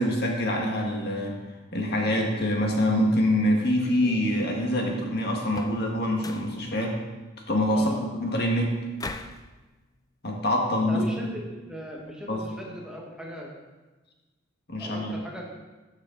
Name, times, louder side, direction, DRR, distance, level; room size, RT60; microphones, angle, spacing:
voice 1, 0.0-1.4 1.7-7.0 7.5-8.0 8.2-8.8 10.2-11.0 12.3-12.4 14.7-15.2, left 1 dB, 55° left, 0 dB, 1.7 m, -25 dB
sound 1, 4.0-7.4, right 2 dB, 25° right, 2.8 m, -47 dB
sound 2, 5.4-5.9 6.2-6.6 9.0-9.4, left 3 dB, 20° left, 0.5 m, -38 dB
voice 2, 10.9-13.5 14.8-15.5, equal, 5° right, -2 dB, 1.3 m, -38 dB
13.5 x 6.6 x 3.9 m, 1.2 s
head